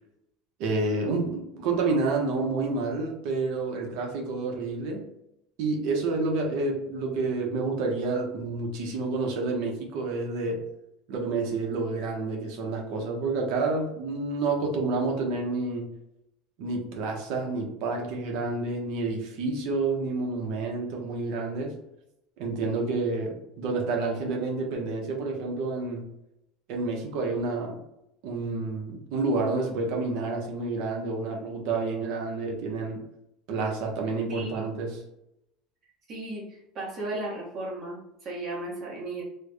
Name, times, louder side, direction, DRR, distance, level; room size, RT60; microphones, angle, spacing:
voice 1, 0.6-5.1 5.6-10.6 11.1-15.9 16.6-21.8 22.4-26.1 26.7-27.8 28.2-33.0 33.5-35.0, right 3 dB, 60° right, 1 dB, 0.8 m, -29 dB
voice 2, 34.3-34.7 36.1-39.2, right 2 dB, 30° right, -3 dB, 1.1 m, -35 dB
3.4 x 2.1 x 3.4 m, 0.83 s
cardioid pair, 165°, 0 cm